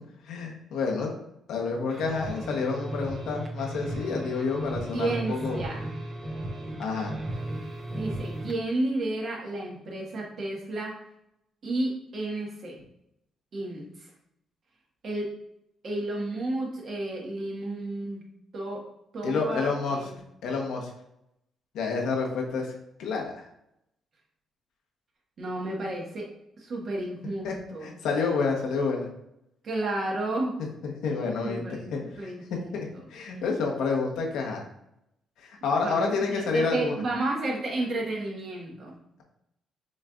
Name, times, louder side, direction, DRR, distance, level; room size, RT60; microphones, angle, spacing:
voice 1, 0.2-1.1 1.5-5.6 6.8-7.2 19.2-20.0 20.4-20.9 21.7-22.7 23.0-23.5 27.4-27.5 27.8-29.1 30.8-31.6 31.9-32.3 32.7-34.6 35.4-36.9, left 4 dB, 85° left, 0 dB, 1.0 m, -29 dB
sound 1, 1.9-8.6, right 1 dB, 30° right, 0.8 m, -35 dB
voice 2, 4.9-5.9 7.9-10.9 11.6-12.8 13.5-14.1 15.0-15.3 15.8-18.2 18.5-18.8 19.1-20.0 25.4-26.3 26.6-27.9 29.6-30.6 31.4-32.7 35.7-39.0, right 2 dB, 55° right, -2 dB, 1.5 m, -32 dB
6.3 x 3.2 x 2.4 m, 0.81 s
cardioid pair, 90°, 0 cm